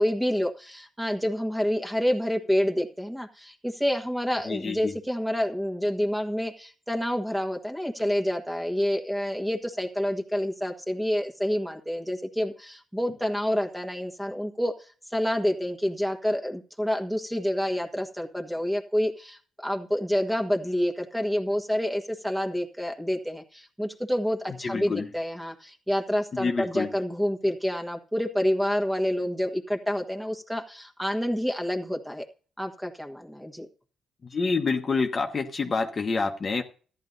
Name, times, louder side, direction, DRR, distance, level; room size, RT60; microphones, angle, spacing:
voice 1, 0.0-14.7 15.1-32.2 32.6-33.6, equal, 5° right, 4 dB, 1.5 m, -28 dB
voice 2, 4.4-4.9 24.6-25.1 26.3-26.9 34.2-36.6, left 4 dB, 35° left, 4 dB, 1.2 m, -27 dB
14.0 x 10.5 x 2.7 m, 0.39 s
cardioid pair, 90°, 0 cm